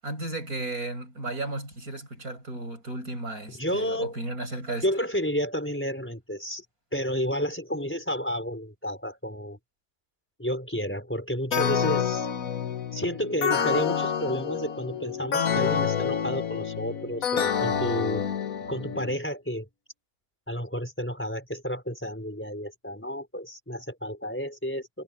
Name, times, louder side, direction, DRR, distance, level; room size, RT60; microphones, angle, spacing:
voice 1, 0.0-4.9, right 2 dB, 60° right, 8.4 m, -34 dB
voice 2, 3.5-4.2 4.8-6.6 6.9-9.6 10.4-12.3 12.9-18.2 18.7-19.7 20.5-25.0, equal, 5° left, 4.6 m, -31 dB
sound 1, 11.5-19.2, left 7 dB, 60° left, 1.5 m, -28 dB
omnidirectional pair, 1.7 m